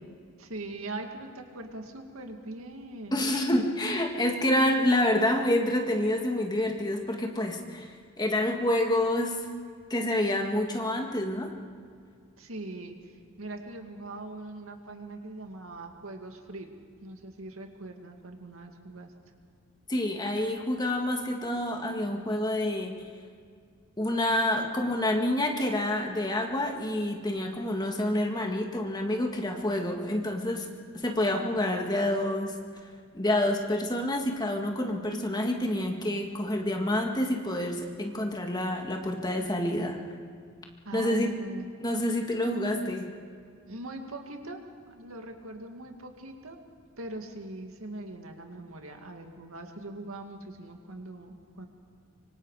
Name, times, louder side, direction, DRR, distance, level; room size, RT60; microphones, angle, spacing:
voice 1, 0.4-3.2 12.4-13.0 13.4-16.7 17.0-19.1 40.8-41.7 43.6-44.6 44.9-46.6 47.0-51.7, right 2 dB, 90° right, 4 dB, 2.2 m, -41 dB
voice 2, 3.1-7.9 8.2-9.4 9.9-11.5 19.9-22.9 24.0-30.7 30.9-32.6 33.1-40.0 40.9-41.3 41.8-43.1, left 1 dB, 20° left, 2 dB, 1.9 m, -28 dB
25.0 x 24.5 x 4.9 m, 2.1 s
head